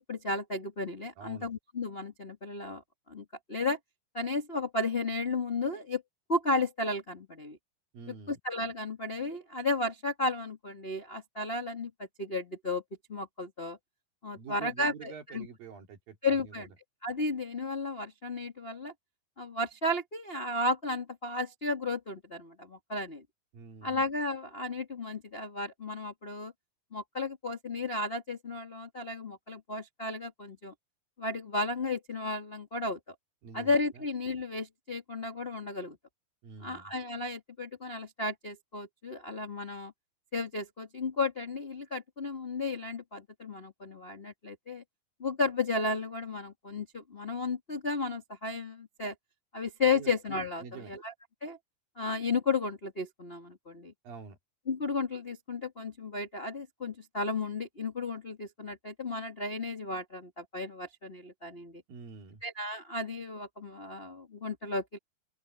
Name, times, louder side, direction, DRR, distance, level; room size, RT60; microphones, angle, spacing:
voice 1, 0.0-2.8 3.1-3.8 4.1-6.0 6.3-7.6 8.3-11.9 12.2-12.8 13.1-13.8 14.2-15.5 16.2-16.7 17.0-18.9 19.4-23.2 23.8-26.5 26.9-30.7 31.2-33.0 33.5-36.0 36.6-39.9 40.3-44.8 45.2-49.1 49.5-51.1 51.4-51.6 52.0-53.9 54.7-61.8 62.4-65.0, left 3 dB, 60° left, 0.6 m, -33 dB
voice 2, 1.2-1.5 7.9-8.4 14.3-16.7 23.5-24.0 33.4-34.0 36.4-36.9 49.9-50.1 50.6-50.9 54.0-54.4 61.9-62.4, right 6 dB, 65° right, 4.4 m, -46 dB
open air
omnidirectional pair, 4.6 m